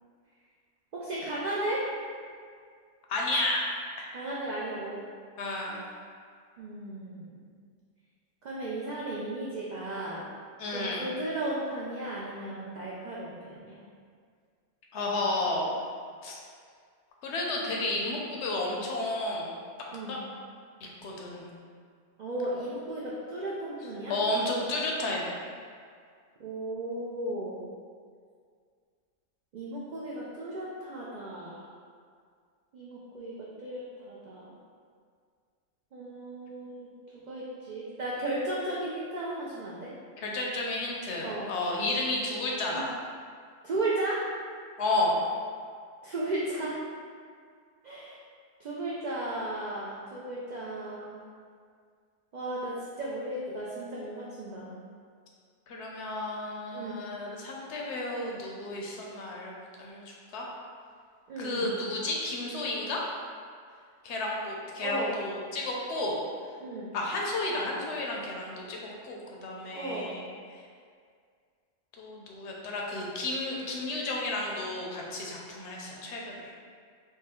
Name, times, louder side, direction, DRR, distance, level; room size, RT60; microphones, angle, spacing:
voice 1, 0.9-1.9 4.1-5.0 6.6-7.6 8.4-10.3 10.7-13.8 19.9-20.2 22.2-24.2 26.4-27.6 29.5-31.7 32.7-34.5 35.9-39.9 41.2-41.5 42.7-42.9 43.6-44.3 46.0-46.8 47.8-48.2 48.6-51.2 52.3-54.7 56.7-56.9 61.3-61.7 64.8-65.2 66.6-66.9 69.7-70.1, right 1 dB, 85° right, -6 dB, 0.4 m, -35 dB
voice 2, 3.1-3.6 4.0-4.1 5.4-5.9 10.6-11.0 14.9-15.8 16.2-16.4 17.2-19.5 20.1-20.2 20.8-21.5 24.1-25.3 40.2-42.9 44.8-45.2 55.7-60.5 61.4-63.0 64.0-66.2 66.9-68.8 69.0-70.2 72.0-76.5, left 2 dB, 70° left, -2 dB, 0.8 m, -32 dB
4.0 x 2.0 x 3.6 m, 2.1 s
omnidirectional pair, 1.3 m